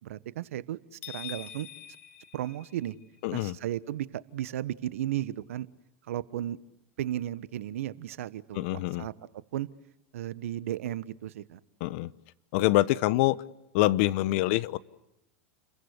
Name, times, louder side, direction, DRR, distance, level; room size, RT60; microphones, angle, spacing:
voice 1, 0.0-1.7 2.3-3.0 3.3-5.7 6.1-6.6 7.0-9.7 10.1-11.6, right 12 dB, 75° right, 16 dB, 1.3 m, -35 dB
sound 1, 1.0-3.2, left 12 dB, 80° left, 4.2 m, -44 dB
voice 2, 3.2-3.5 8.5-9.1 11.8-12.1 12.5-13.4 13.7-14.8, left 17 dB, 60° left, 17 dB, 1.1 m, -25 dB
30.0 x 22.5 x 8.2 m, 0.89 s
hypercardioid pair, 95°, 7 cm